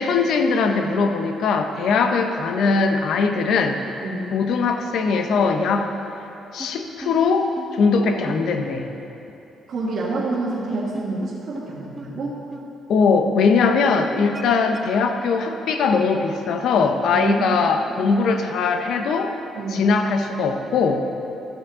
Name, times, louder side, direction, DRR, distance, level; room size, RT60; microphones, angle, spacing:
voice 1, 0.0-3.8 4.3-5.9 6.5-8.9 12.9-19.3 19.7-21.1, left 4 dB, 70° left, 6 dB, 0.7 m, -20 dB
voice 2, 4.0-4.3 8.0-8.1 9.7-12.4 17.1-17.6 18.0-18.1 19.5-19.9, right 3 dB, 55° right, -7 dB, 1.5 m, -28 dB
sound 1, 6.6-6.7 7.0-7.1 7.6-7.7 8.3-8.4 10.2-11.3 11.5-11.6 12.0-12.1 12.5-12.6 13.2-13.3 13.8-13.9 14.3-14.8, right 2 dB, 15° right, 0.8 m, -35 dB
12.0 x 7.3 x 3.7 m, 2.9 s
cardioid pair, 100°, 0 cm